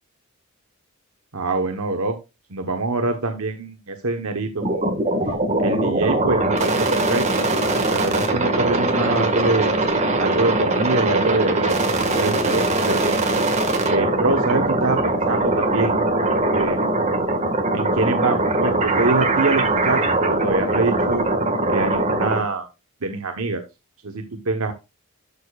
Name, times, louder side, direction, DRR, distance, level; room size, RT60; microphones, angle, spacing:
voice 1, 1.3-2.2 2.5-4.9 5.6-7.5 7.9-9.7 10.2-11.8 12.2-13.2 13.9-16.0 16.5-16.8 17.7-21.3 21.7-22.7 23.0-23.6 24.0-24.7, right 3 dB, 75° right, 5 dB, 1.2 m, -24 dB
sound 1, 4.6-22.4, right 2 dB, 30° right, 1.7 m, -21 dB
12.0 x 6.6 x 2.4 m, 0.26 s
head